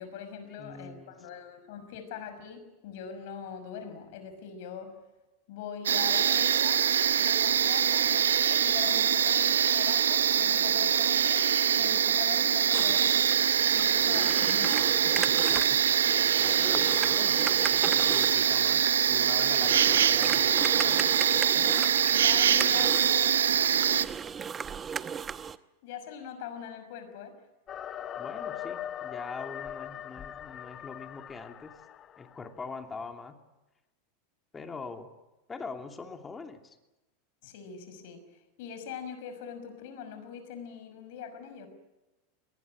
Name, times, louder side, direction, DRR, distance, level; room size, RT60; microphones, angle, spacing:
voice 1, 0.0-4.9 5.5-6.8 7.2-11.4 11.7-14.8 21.6-24.1 25.3-25.5 25.8-27.3 37.4-38.2 38.6-41.7, left 7 dB, 65° left, 9 dB, 5.9 m, -42 dB
voice 2, 0.6-1.2 15.5-16.0 16.4-17.4 17.7-21.1 28.2-31.8 32.2-33.4 34.5-35.1 35.5-36.8, left 4 dB, 20° left, 5 dB, 2.9 m, -43 dB
sound 1, 5.9-24.1, right 9 dB, 90° right, 0.8 m, -24 dB
sound 2, 12.7-25.6, right 7 dB, 25° right, 0.9 m, -37 dB
sound 3, 27.7-32.5, left 10 dB, 35° left, 1.0 m, -40 dB
22.0 x 19.5 x 10.0 m, 1.0 s
hypercardioid pair, 105°, 0 cm